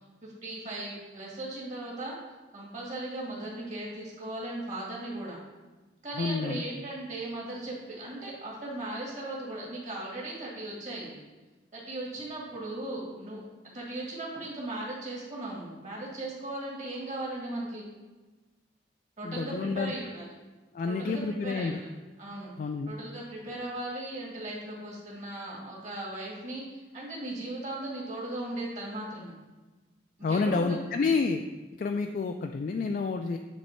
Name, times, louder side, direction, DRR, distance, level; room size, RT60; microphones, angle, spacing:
voice 1, 0.2-2.2 2.5-5.4 6.0-11.2 11.7-13.4 13.7-17.9 19.2-20.3 20.8-21.9 22.2-22.5 22.9-29.3 30.2-30.8, right 1 dB, 45° right, -4 dB, 2.0 m, -37 dB
voice 2, 6.2-6.6 19.2-19.9 20.7-21.8 22.6-22.9 30.2-31.4 31.8-33.4, left 4 dB, 50° left, 5 dB, 0.3 m, -29 dB
9.0 x 3.2 x 4.4 m, 1.2 s
head